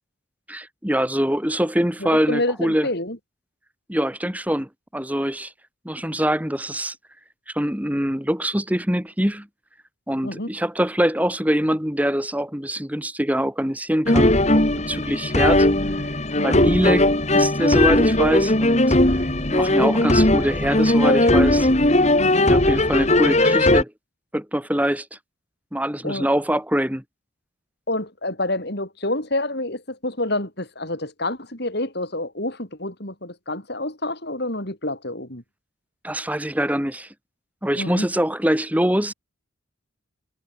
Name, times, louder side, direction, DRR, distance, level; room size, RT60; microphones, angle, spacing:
voice 1, 0.5-2.9 3.9-5.5 5.8-6.9 7.5-9.5 10.1-15.7 16.4-17.1 17.3-19.2 19.5-21.7 22.5-23.9 24.3-25.1 25.7-27.0 36.0-37.1 37.6-39.1, equal, 10° right, 2.7 m, -24 dB
voice 2, 2.0-3.2 10.2-10.5 16.3-16.6 22.2-22.5 26.0-26.3 27.9-35.4 37.7-38.1, left 1 dB, 55° left, 7.0 m, -28 dB
sound 1, 14.1-23.8, left 1 dB, 35° left, 2.8 m, -18 dB
head